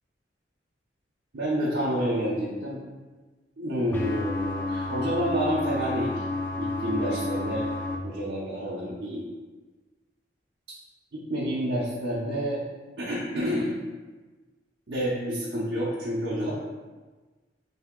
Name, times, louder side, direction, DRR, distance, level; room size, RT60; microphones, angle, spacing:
voice 1, 1.3-2.8 3.6-6.2 6.6-7.7 8.0-9.3 10.7-10.8 11.1-12.6 13.0-13.7 14.9-16.5, equal, 60° right, -7 dB, 0.7 m, -29 dB
sound 1, 3.9-8.0, left 2 dB, 10° left, 0.4 m, -31 dB
3.4 x 2.7 x 3.6 m, 1.3 s
head